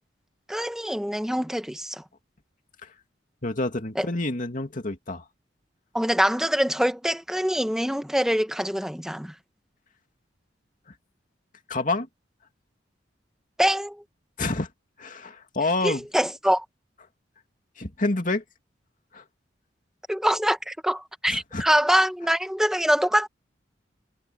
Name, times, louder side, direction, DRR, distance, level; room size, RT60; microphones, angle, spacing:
voice 1, 0.5-2.0 4.0-4.1 5.9-9.3 13.6-14.0 15.8-16.6 20.1-23.3, equal, 5° right, 1.3 m, -24 dB
voice 2, 3.4-5.2 11.7-12.1 14.4-14.7 15.0-16.1 17.8-18.4 19.1-19.2 21.3-21.6, left 2 dB, 45° left, 2.6 m, -28 dB
head